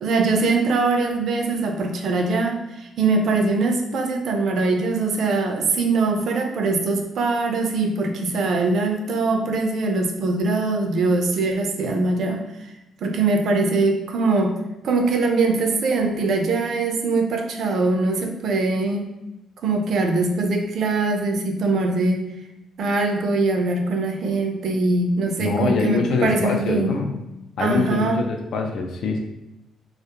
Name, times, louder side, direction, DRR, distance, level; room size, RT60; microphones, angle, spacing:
voice 1, 0.0-12.7 13.0-14.5 14.8-19.1 19.6-22.2 22.8-27.0 27.6-28.2, right 3 dB, 65° right, 4 dB, 0.4 m, -22 dB
voice 2, 25.4-27.1 27.6-29.2, left 4 dB, 70° left, 3 dB, 0.4 m, -24 dB
2.3 x 2.0 x 2.8 m, 0.91 s
cardioid pair, 90°, 0 cm